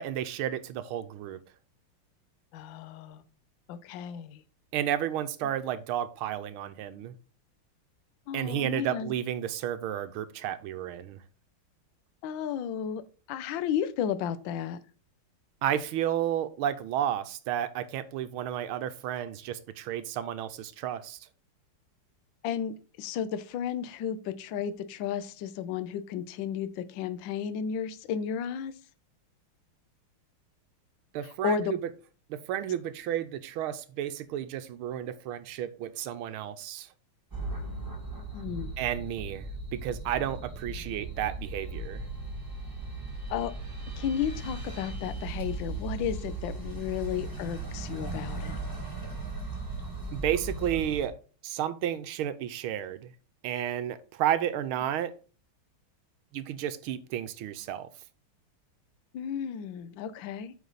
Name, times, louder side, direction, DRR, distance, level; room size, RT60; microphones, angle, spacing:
voice 1, 0.0-1.4 4.7-7.1 8.3-11.2 15.6-21.2 31.1-31.9 32.3-36.9 38.8-42.1 50.1-51.2 51.4-53.1 53.4-55.2 56.3-57.9, right 11 dB, 80° right, 1.5 m, -32 dB
voice 2, 2.5-3.2 3.7-4.4 8.3-9.1 12.2-13.0 13.3-14.8 22.4-28.7 31.4-31.7 38.3-38.7 43.3-43.5 44.0-48.6 59.1-60.5, left 8 dB, 70° left, 1.4 m, -33 dB
sound 1, 37.3-51.1, right 2 dB, 10° right, 1.6 m, -37 dB
8.2 x 5.1 x 4.0 m
omnidirectional pair, 2.4 m